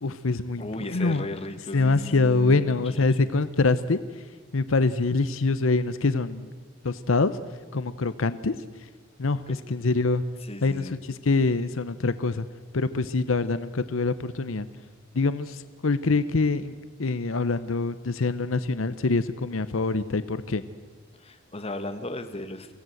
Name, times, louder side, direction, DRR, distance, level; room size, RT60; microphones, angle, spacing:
voice 1, 0.0-1.2 1.7-4.0 4.5-6.5 6.8-7.3 7.7-8.5 9.2-9.4 9.7-10.2 10.6-12.5 12.7-14.7 15.1-16.7 17.0-20.6, left 3 dB, 80° left, 13 dB, 0.8 m, -25 dB
voice 2, 0.6-3.1 10.4-11.0 21.2-22.7, left 1 dB, 30° left, 8 dB, 1.5 m, -36 dB
24.0 x 16.5 x 7.9 m, 1.4 s
head